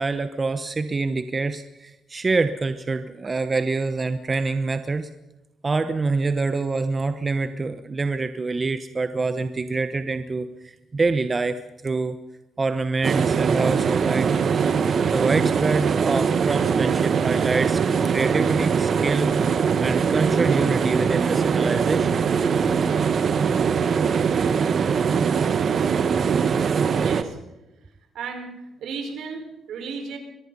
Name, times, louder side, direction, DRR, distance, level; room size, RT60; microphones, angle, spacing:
voice 1, 0.0-5.1 5.6-12.2 12.6-14.5 15.1-19.3 19.8-22.3, right 3 dB, 30° right, 10 dB, 1.0 m, -26 dB
sound 1, 13.0-27.2, right 6 dB, 55° right, 1.5 m, -22 dB
voice 2, 27.0-27.4 28.1-30.2, right 5 dB, 75° right, 5 dB, 4.7 m, -34 dB
23.0 x 22.0 x 5.5 m, 0.98 s
cardioid pair, 90°, 0 cm